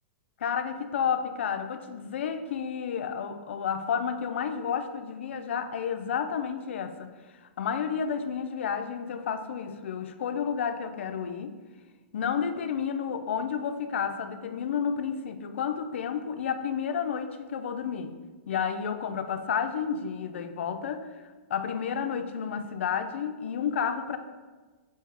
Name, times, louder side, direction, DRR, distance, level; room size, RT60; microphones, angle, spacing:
voice 1, 0.4-7.1 7.6-11.6 12.1-18.1 18.5-21.1 21.5-24.2, left 7 dB, 80° left, 8 dB, 0.3 m, -31 dB
3.5 x 2.7 x 4.6 m, 1.3 s
hypercardioid pair, 160°, 6 cm